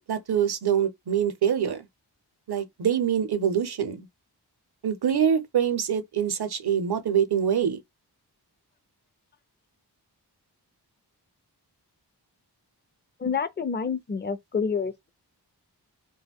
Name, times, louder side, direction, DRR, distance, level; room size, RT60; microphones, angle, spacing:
voice 1, 0.0-1.9 2.5-4.1 4.8-7.8, right 8 dB, 65° right, 0.6 m, -25 dB
voice 2, 13.2-15.1, left 6 dB, 25° left, 0.4 m, -28 dB
2.2 x 2.1 x 3.5 m
wide cardioid pair, 45°, 41 cm